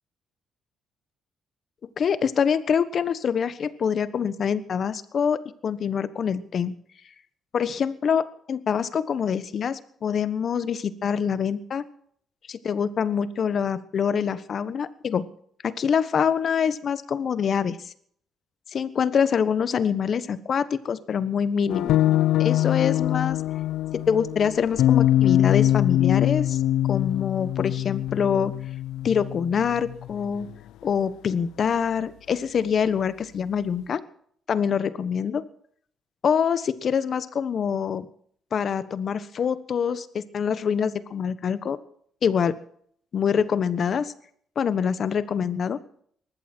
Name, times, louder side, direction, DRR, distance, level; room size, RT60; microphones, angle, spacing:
voice 1, 2.0-6.7 7.5-11.8 12.5-15.2 15.6-17.8 18.7-22.0 22.4-23.4 23.9-26.6 26.9-28.5 29.0-30.5 30.8-34.0 34.5-35.4 36.2-38.1 38.5-41.8 42.2-42.6 43.1-44.1 44.6-45.8, left 7 dB, 55° left, 14 dB, 1.2 m, -25 dB
sound 1, 21.7-30.5, left 13 dB, 85° left, 0.6 m, -23 dB
19.5 x 14.0 x 4.5 m, 0.63 s
cardioid pair, 90°, 0 cm